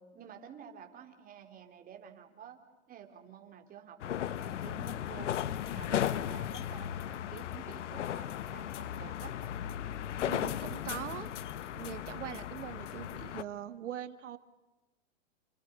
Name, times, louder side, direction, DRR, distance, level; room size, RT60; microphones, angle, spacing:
voice 1, 0.0-2.6 2.9-9.4, right 8 dB, 25° right, 4 dB, 3.8 m, -51 dB
sound 1, 4.0-13.4, left 10 dB, 75° left, 1.2 m, -36 dB
voice 2, 10.2-11.3 11.7-14.4, right 11 dB, 80° right, 10 dB, 2.1 m, -42 dB
30.0 x 29.5 x 5.6 m, 1.1 s
hypercardioid pair, 140°, 36 cm